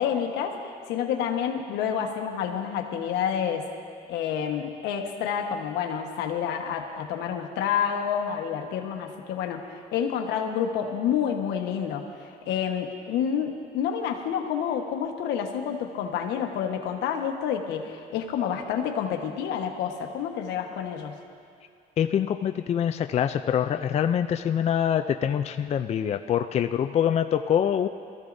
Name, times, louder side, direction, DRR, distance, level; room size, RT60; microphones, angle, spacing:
voice 1, 0.0-3.7 4.1-21.2, left 8 dB, 85° left, 4 dB, 1.3 m, -29 dB
voice 2, 22.0-27.9, left 9 dB, 40° left, 7 dB, 0.4 m, -25 dB
22.0 x 14.5 x 2.7 m, 2.3 s
cardioid pair, 110°, 17 cm